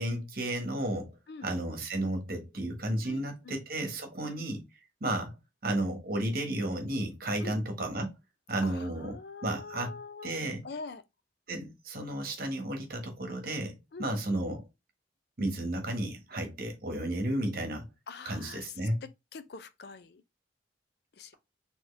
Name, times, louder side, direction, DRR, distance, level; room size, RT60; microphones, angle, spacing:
voice 1, 0.0-1.1 1.4-4.6 5.0-5.4 5.6-8.1 8.5-9.2 9.4-10.0 10.2-10.6 11.5-14.6 15.4-17.8 18.2-19.0, right 1 dB, 50° right, 1.2 m, -33 dB
voice 2, 3.0-3.6 4.2-4.5 7.4-7.6 8.6-10.4 10.6-11.0 13.9-14.1 18.1-18.6 19.0-20.2 21.2-21.3, left 4 dB, 55° left, 0.4 m, -44 dB
4.3 x 2.9 x 3.2 m
head